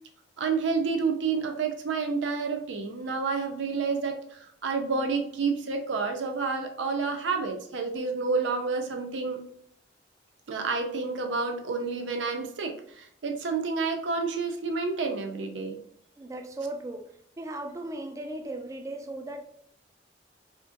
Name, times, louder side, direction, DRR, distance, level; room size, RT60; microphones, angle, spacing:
voice 1, 0.4-9.4 10.5-15.8, right 4 dB, 90° right, 4 dB, 0.5 m, -29 dB
voice 2, 16.2-17.1 17.4-19.4, right 2 dB, 15° right, 4 dB, 0.3 m, -37 dB
2.8 x 2.5 x 2.5 m, 0.67 s
head